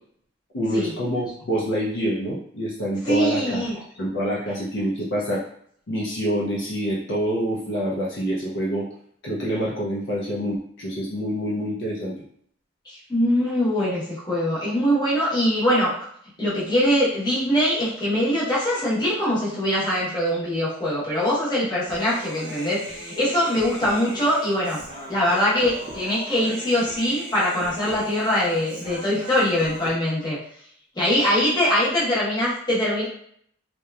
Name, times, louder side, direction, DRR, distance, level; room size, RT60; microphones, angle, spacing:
voice 1, 0.5-3.6 4.0-5.4 5.9-8.9 9.2-12.1, equal, 55° left, -5 dB, 0.5 m, -26 dB
voice 2, 3.0-3.8 12.9-15.9 16.4-24.8 25.1-30.4 31.0-33.1, equal, 20° left, -8 dB, 0.9 m, -22 dB
Human voice, 21.9-29.9, right 1 dB, 25° right, 0.5 m, -39 dB
2.8 x 2.2 x 2.3 m, 0.64 s
head